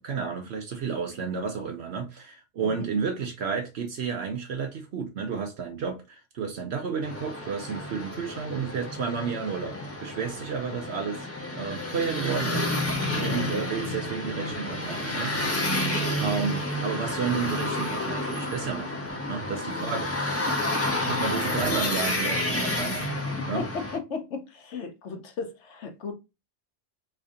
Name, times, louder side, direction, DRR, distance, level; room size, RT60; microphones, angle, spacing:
voice 1, 0.0-11.3 11.5-12.7 13.2-15.3 16.2-19.0 19.3-20.1 21.1-23.1 23.5-23.7, right 6 dB, 65° right, 0.8 m, -31 dB
sound 1, 7.0-24.0, left 1 dB, 15° left, 0.5 m, -30 dB
voice 2, 13.2-13.6 19.6-20.0 21.4-21.7 23.5-26.1, left 4 dB, 65° left, 1.0 m, -36 dB
3.3 x 2.7 x 3.5 m
omnidirectional pair, 1.3 m